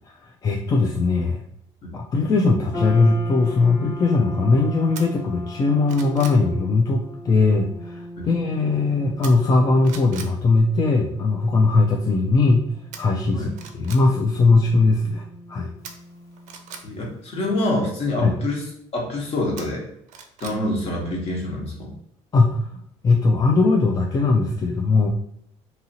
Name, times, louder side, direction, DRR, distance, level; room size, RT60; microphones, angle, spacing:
voice 1, 0.2-1.4 1.9-12.6 13.0-15.7 18.2-18.3 22.3-22.7 23.0-25.1, left 3 dB, 30° left, 0 dB, 0.4 m, -19 dB
sound 1, 2.7-17.1, left 1 dB, 90° left, 1.2 m, -39 dB
sound 2, 4.9-5.1 5.6-6.4 9.2-9.6 9.8-10.3 12.9-13.0 13.5-14.0 15.8-16.8 19.6-20.6 20.9-21.0, right 7 dB, 75° right, 0.5 m, -39 dB
voice 2, 16.8-18.6 18.9-19.8 20.4-21.9, left 1 dB, 50° left, -1 dB, 1.1 m, -26 dB
2.7 x 2.7 x 2.8 m, 0.73 s
cardioid pair, 100°, 13 cm